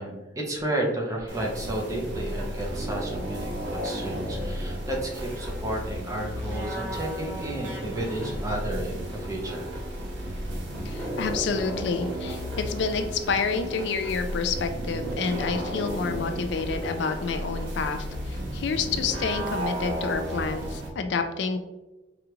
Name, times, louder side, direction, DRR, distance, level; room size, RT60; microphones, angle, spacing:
voice 1, 0.0-9.7, right 1 dB, 20° right, -1 dB, 0.7 m, -32 dB
sound 1, 1.3-20.9, equal, 70° right, 0.8 m, -33 dB
voice 2, 10.8-21.6, left 5 dB, 70° left, 7 dB, 0.4 m, -29 dB
4.8 x 2.4 x 3.0 m, 1.1 s
head